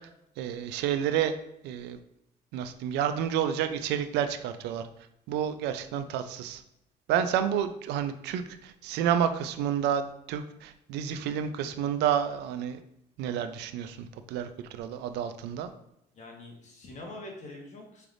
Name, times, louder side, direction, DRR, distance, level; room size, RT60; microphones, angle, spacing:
voice 1, 0.4-1.4 1.6-2.0 2.5-4.8 5.3-6.6 7.1-12.8 13.2-15.7, right 9 dB, 85° right, 10 dB, 0.4 m, -30 dB
voice 2, 16.1-18.1, left 2 dB, 45° left, 1 dB, 1.2 m, -44 dB
4.8 x 3.3 x 2.5 m, 0.81 s
cardioid pair, 110°, 17 cm